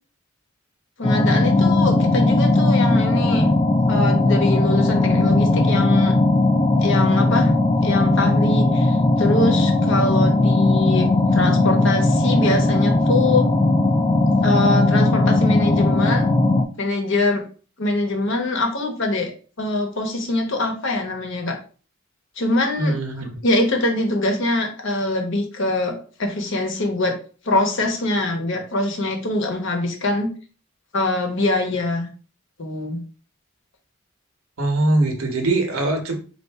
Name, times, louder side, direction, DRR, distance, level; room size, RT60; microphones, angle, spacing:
voice 1, 1.0-3.5 3.9-6.1 6.8-7.5 7.8-13.5 14.4-16.3 16.8-17.4 17.8-19.3 19.6-21.6 22.4-27.2 27.4-30.3 30.9-32.1 32.6-33.0, left 2 dB, 60° left, 3 dB, 1.0 m, -23 dB
sound 1, 1.0-16.6, left 2 dB, 20° left, 0.3 m, -18 dB
voice 2, 22.8-23.4 34.6-36.2, right 2 dB, 90° right, 3 dB, 1.0 m, -21 dB
4.2 x 2.6 x 3.5 m, 0.39 s
head